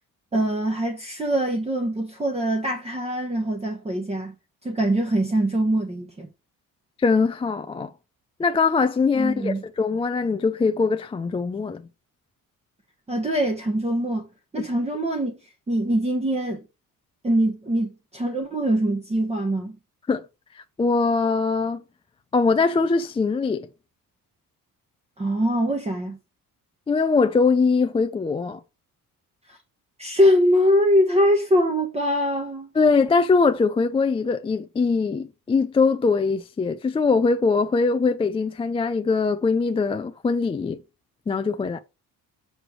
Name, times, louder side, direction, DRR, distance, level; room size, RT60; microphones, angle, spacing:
voice 1, 0.3-4.3 4.6-6.3 9.2-9.6 13.1-14.3 14.5-15.4 15.7-16.6 17.2-19.8 25.2-26.2 29.5-29.6 30.0-32.7, equal, 20° right, 1.1 m, -23 dB
voice 2, 7.0-7.9 8.4-11.8 20.1-20.2 20.5-21.8 22.3-23.7 26.9-28.6 32.8-40.8 41.3-41.8, left 4 dB, 15° left, 0.4 m, -22 dB
7.7 x 3.3 x 6.2 m
cardioid pair, 135°, 34 cm